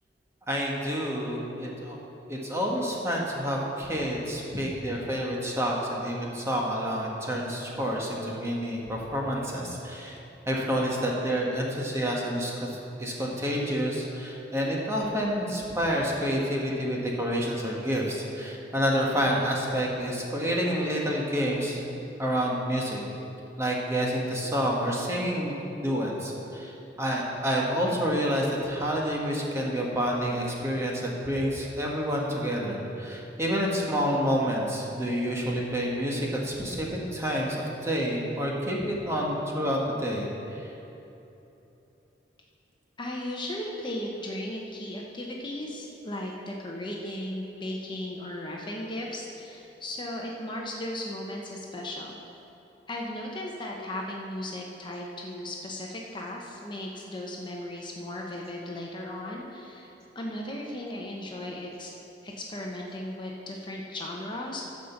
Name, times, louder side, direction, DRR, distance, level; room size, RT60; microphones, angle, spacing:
voice 1, 0.5-2.0 2.3-10.2 10.5-21.8 22.2-23.0 23.6-37.6 37.8-40.7, equal, 15° right, -3 dB, 1.5 m, -28 dB
voice 2, 43.0-52.2 52.9-61.9 62.2-64.6, left 1 dB, 25° left, -1 dB, 1.0 m, -36 dB
13.0 x 5.2 x 7.1 m, 3.0 s
head